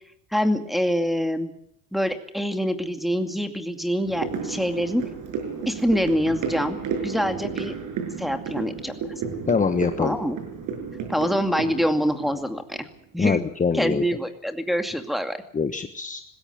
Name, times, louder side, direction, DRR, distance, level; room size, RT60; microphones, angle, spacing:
voice 1, 0.3-1.5 1.9-5.0 5.7-6.8 7.0-7.7 8.2-8.9 10.0-10.4 11.1-12.8 13.1-13.5 13.7-15.4, equal, ahead, 6 dB, 2.4 m, -25 dB
sound 1, 4.1-13.4 13.8-13.9, right 6 dB, 55° right, 6.3 m, -32 dB
voice 2, 9.5-10.2 13.2-14.0 15.5-16.2, left 5 dB, 20° left, 8 dB, 1.4 m, -23 dB
20.5 x 16.5 x 9.0 m, 0.71 s
supercardioid pair, 110°, 38 cm